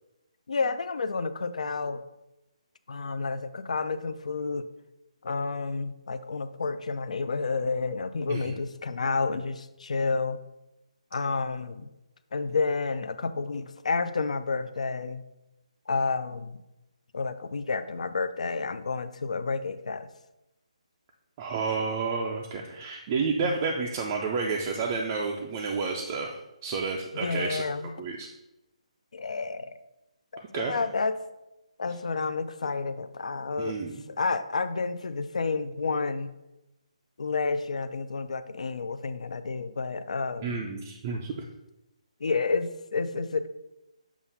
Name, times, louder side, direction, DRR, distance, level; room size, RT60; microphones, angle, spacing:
voice 1, 0.5-2.0 2.9-4.7 5.2-10.4 11.1-11.9 12.3-15.2 15.9-16.6 17.1-20.1 23.4-23.5 27.1-27.9 29.1-29.7 30.3-31.2 31.8-33.8 34.1-36.3 37.2-40.6 42.2-43.5, left 4 dB, 70° left, 12 dB, 0.4 m, -30 dB
voice 2, 21.4-27.6 28.0-28.3 30.5-30.8 33.6-34.0 40.4-41.3, right 4 dB, 20° right, 0 dB, 0.3 m, -30 dB
7.2 x 2.4 x 5.4 m, 0.94 s
hypercardioid pair, 170°, 4 cm